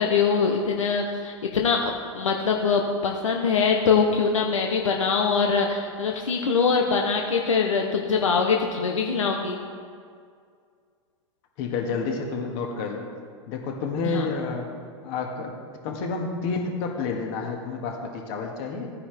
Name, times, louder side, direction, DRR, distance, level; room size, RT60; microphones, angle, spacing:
voice 1, 0.0-9.6 14.0-14.3, left 5 dB, 90° left, 1 dB, 1.0 m, -23 dB
voice 2, 11.6-13.0 13.5-14.7 15.0-15.5 15.8-18.9, left 4 dB, 55° left, 2 dB, 2.0 m, -29 dB
15.0 x 9.8 x 3.5 m, 2.2 s
hypercardioid pair, 105°, 16 cm